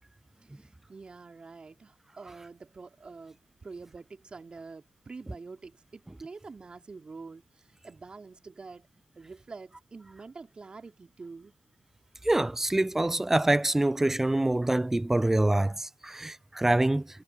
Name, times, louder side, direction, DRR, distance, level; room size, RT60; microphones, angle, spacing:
voice 1, 0.4-8.9 9.1-11.5, right 4 dB, 30° right, 2.9 m, -46 dB
voice 2, 12.2-17.1, right 1 dB, 10° right, 0.4 m, -25 dB
hypercardioid pair, 55°, 3 cm